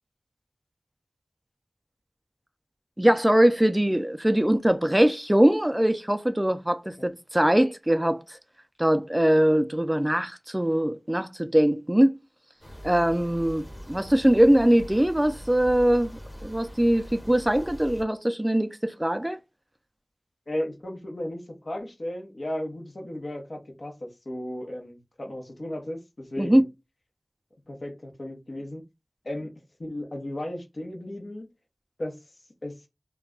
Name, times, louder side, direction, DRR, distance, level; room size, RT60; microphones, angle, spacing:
voice 1, 3.0-8.2 8.8-12.2 12.8-16.1 16.4-19.4 26.4-26.6, right 1 dB, 15° right, 0.3 m, -22 dB
voice 2, 6.8-7.1 20.5-26.6 27.7-28.8 29.2-29.5 29.8-31.5 32.0-32.2 32.6-32.8, left 1 dB, 65° left, 0.8 m, -35 dB
sound 1, 12.6-18.0, equal, 20° left, 0.8 m, -42 dB
2.3 x 2.2 x 3.6 m
wide cardioid pair, 55°, 0 cm